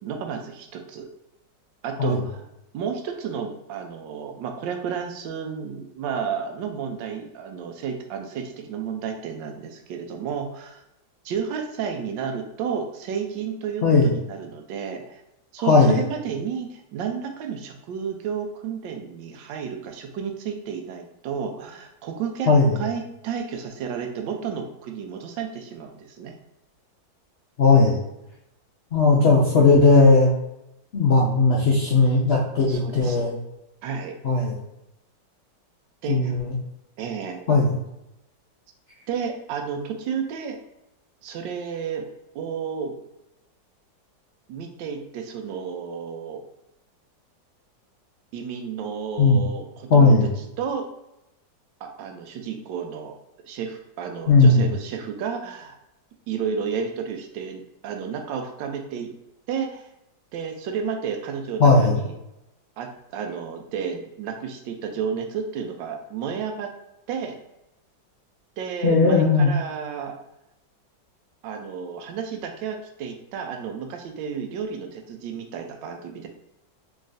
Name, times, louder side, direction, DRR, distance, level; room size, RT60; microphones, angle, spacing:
voice 1, 0.0-1.1 1.8-2.4 2.7-10.8 11.2-15.2 15.5-22.5 22.8-26.3 32.7-33.3 33.8-34.2 36.0-36.3 37.0-37.4 39.1-40.6 41.2-42.0 42.3-42.9 44.5-46.4 48.3-50.1 50.6-50.9 51.8-53.1 53.5-55.8 56.3-59.1 59.5-59.9 60.3-62.1 62.8-66.7 67.1-67.4 68.6-70.2 71.4-76.3, right 6 dB, 80° right, 4 dB, 1.3 m, -32 dB
voice 2, 15.6-16.0 22.5-22.8 27.6-28.0 28.9-30.3 30.9-33.3 34.2-34.5 36.1-36.5 37.5-37.8 49.2-49.4 49.9-50.3 54.3-54.6 61.6-62.0 68.8-69.6, left 3 dB, 90° left, -4 dB, 0.5 m, -17 dB
3.9 x 3.5 x 2.5 m, 0.87 s
omnidirectional pair, 2.0 m